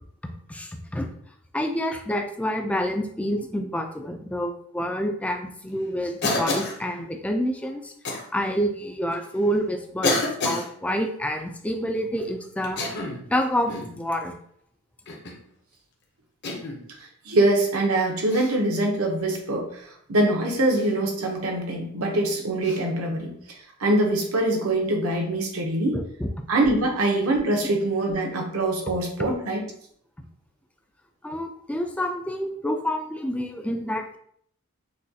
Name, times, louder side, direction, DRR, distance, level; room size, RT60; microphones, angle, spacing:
voice 1, 0.5-1.1 1.5-7.9 8.3-13.0 13.3-14.3 25.9-26.3 31.2-34.2, equal, 5° left, 4 dB, 0.3 m, -28 dB
Cough, 6.2-6.8 8.0-8.2 9.1-9.2 10.0-10.7 12.6-13.3 13.7-14.0 15.1-15.4 16.4-16.8 18.3-18.5 20.8-20.9 22.6-22.8, left 2 dB, 50° left, 0.8 m, -28 dB
voice 2, 17.2-23.3 23.8-26.0 26.5-29.6, right 1 dB, 75° right, 1 dB, 0.9 m, -23 dB
6.2 x 2.3 x 2.8 m, 0.65 s
head